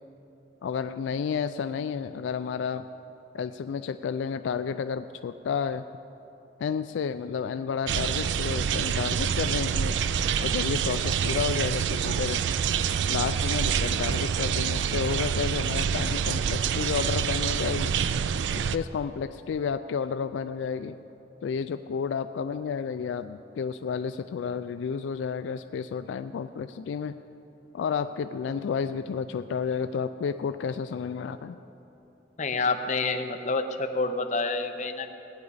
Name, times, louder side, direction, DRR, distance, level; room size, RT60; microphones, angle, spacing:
voice 1, 0.6-2.8 3.3-5.8 6.6-10.0 10.4-12.4 13.1-17.9 18.5-21.0 21.4-27.2 27.7-31.6, left 6 dB, 80° left, 11 dB, 0.3 m, -31 dB
sound 1, 7.9-18.8, right 7 dB, 70° right, 0.3 m, -27 dB
voice 2, 32.4-35.1, left 3 dB, 40° left, 6 dB, 0.7 m, -28 dB
17.5 x 9.7 x 4.0 m, 3.0 s
head